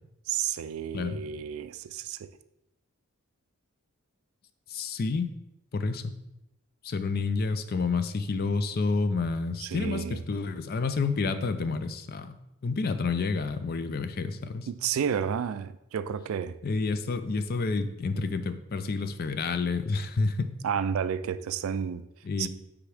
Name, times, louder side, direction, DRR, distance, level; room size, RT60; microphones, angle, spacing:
voice 1, 0.3-2.3 9.6-10.2 14.7-16.6 20.6-22.1 22.4-22.5, right 8 dB, 70° right, 0.3 m, -31 dB
voice 2, 4.7-5.3 5.7-6.1 6.8-12.3 12.6-14.7 16.6-20.5 22.2-22.5, left 4 dB, 45° left, 0.4 m, -29 dB
9.5 x 3.5 x 3.4 m
head